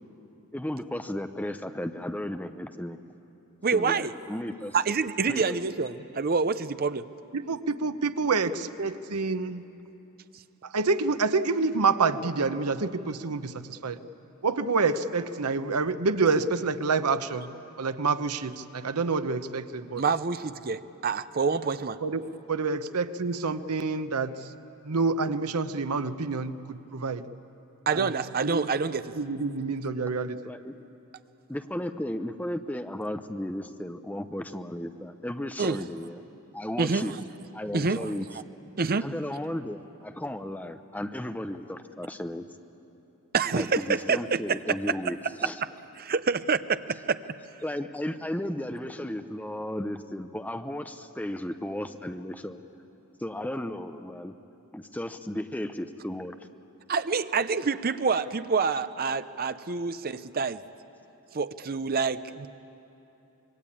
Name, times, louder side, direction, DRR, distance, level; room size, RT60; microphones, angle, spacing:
voice 1, 0.5-3.0 3.7-4.8 5.3-5.6 30.4-30.8 31.5-36.2 36.5-37.1 37.5-38.3 39.0-42.5 43.5-45.6 47.6-52.6 53.2-54.3 54.7-56.4, left 1 dB, 5° left, 8 dB, 0.7 m, -34 dB
voice 2, 3.6-4.1 4.7-7.1 20.0-22.0 27.9-29.1 35.6-35.8 36.8-37.1 37.7-38.3 38.8-39.1 43.3-44.6 46.0-46.8 47.1-47.2 56.9-60.6 61.3-62.5, right 5 dB, 45° right, 12 dB, 0.7 m, -27 dB
voice 3, 7.3-9.6 10.6-14.0 14.4-17.5 17.8-20.0 22.0-22.2 22.5-24.3 24.8-27.2 27.9-28.1 28.4-28.7 29.2-30.4, right 4 dB, 90° right, 11 dB, 0.9 m, -27 dB
26.0 x 22.0 x 8.6 m, 3.0 s
head